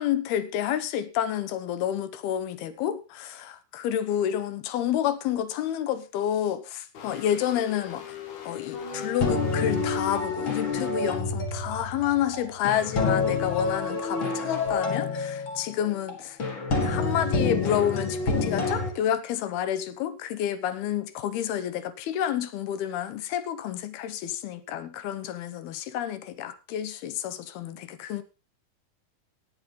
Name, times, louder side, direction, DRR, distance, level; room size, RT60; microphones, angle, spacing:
voice 1, 0.0-8.1 8.5-16.4 16.8-28.2, left 10 dB, 75° left, 2.9 m, -29 dB
sound 1, 6.9-10.2, left 10 dB, 60° left, 2.8 m, -41 dB
sound 2, 8.7-18.9, left 4 dB, 40° left, 2.2 m, -28 dB
17.0 x 9.1 x 3.8 m
omnidirectional pair, 4.6 m